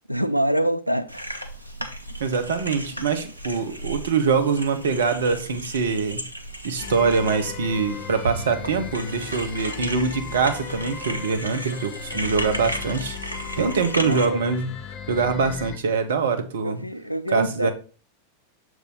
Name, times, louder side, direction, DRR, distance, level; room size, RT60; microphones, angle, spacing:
voice 1, 0.1-1.3 13.6-14.4 16.6-17.7, right 1 dB, 90° left, 0.5 m, -26 dB
sound 1, 1.1-14.2, right 1 dB, 85° right, 0.7 m, -35 dB
voice 2, 2.2-6.2 6.6-13.2 13.6-14.7 15.1-16.8 17.3-17.7, right 5 dB, 60° right, 0.9 m, -24 dB
sound 2, 6.8-15.8, left 7 dB, 35° left, 0.7 m, -37 dB
6.8 x 4.8 x 3.8 m
figure-of-eight pair, 90°, 0 cm